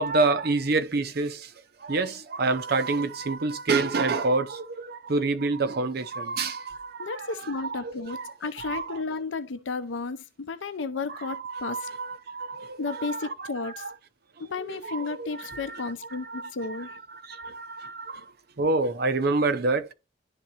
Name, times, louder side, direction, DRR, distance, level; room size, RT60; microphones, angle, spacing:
voice 1, 0.0-1.5 1.8-9.0 11.1-13.9 14.4-19.9, right 3 dB, 55° right, 0.7 m, -28 dB
voice 2, 7.0-11.9 12.8-13.9 14.4-17.0, left 4 dB, 90° left, 0.6 m, -33 dB
11.0 x 3.7 x 2.8 m
head